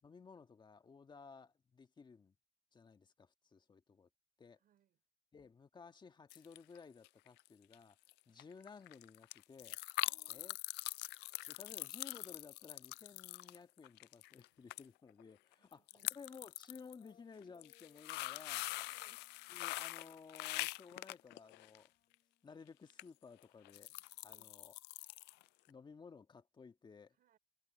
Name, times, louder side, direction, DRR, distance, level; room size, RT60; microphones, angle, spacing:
voice 1, 0.0-2.3 2.7-4.1 4.4-4.6 5.3-8.0 8.3-9.8 10.3-10.6 11.5-18.7 19.5-21.9 22.4-23.9 24.2-24.7 25.7-27.2, left 5 dB, 25° left, 1.6 m, -56 dB
voice 2, 4.5-5.0 10.0-10.6 15.5-16.4 18.6-19.2 24.3-24.6 27.1-27.4, right 11 dB, 60° right, 5.0 m, -73 dB
sound 1, 6.3-6.8 7.0-7.5 7.7-7.8 8.1-8.2 8.4-14.5 14.7-14.8 15.1-15.2 15.7-16.9 17.4-21.9 22.9-23.0 23.4-25.4 25.7-25.8, left 20 dB, 85° left, 0.4 m, -43 dB
sound 2, 17.0-24.6, left 9 dB, 50° left, 7.2 m, -75 dB
cardioid pair, 110°, 17 cm